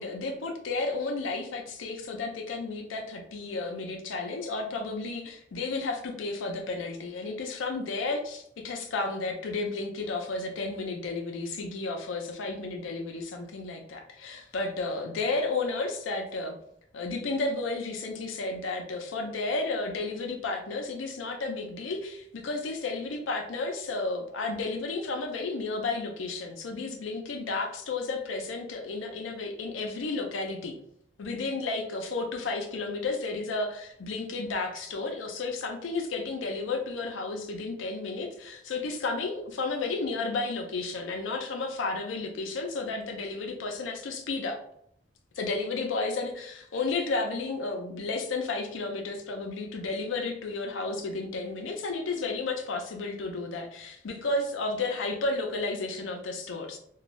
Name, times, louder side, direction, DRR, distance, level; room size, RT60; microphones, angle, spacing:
voice 1, 0.0-16.5 16.9-30.8 31.2-44.6 45.3-56.8, left 3 dB, 85° left, 3 dB, 0.5 m, -32 dB
2.5 x 2.2 x 3.1 m, 0.70 s
head